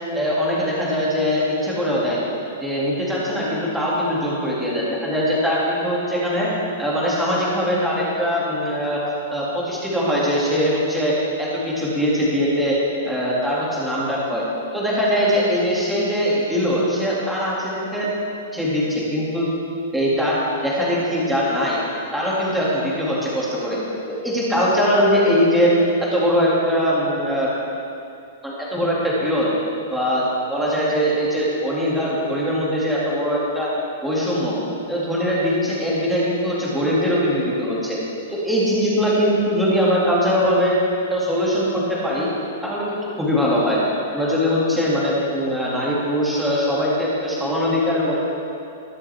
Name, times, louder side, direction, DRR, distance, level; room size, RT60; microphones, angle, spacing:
voice 1, 0.1-2.2 2.6-6.5 6.8-9.0 9.3-12.8 13.0-14.4 14.7-18.1 18.5-19.5 19.9-21.8 22.1-23.8 24.1-25.7 26.0-27.5 28.4-29.5 29.9-30.2 30.5-33.7 34.0-34.6 34.9-38.0 38.3-40.8 41.1-42.3 42.6-43.8 44.1-48.2, equal, ahead, -7 dB, 2.2 m, -21 dB
20.0 x 7.6 x 3.4 m, 2.7 s
hypercardioid pair, 165°, 0 cm